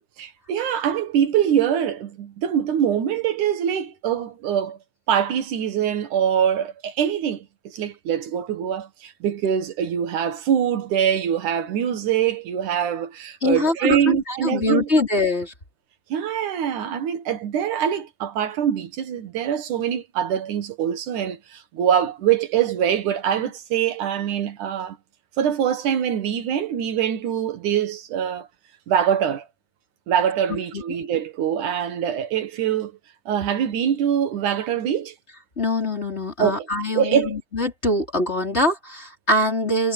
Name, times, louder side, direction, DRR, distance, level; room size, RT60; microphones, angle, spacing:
voice 1, 0.2-4.8 5.1-14.9 16.1-25.0 25.4-28.5 28.9-29.5 30.1-32.9 33.3-35.1 36.4-36.7 36.9-37.4, right 9 dB, 90° right, 3.1 m, -23 dB
voice 2, 13.4-15.5 30.7-30.8 35.6-39.9, left 1 dB, 20° left, 5.0 m, -23 dB
omnidirectional pair, 3.4 m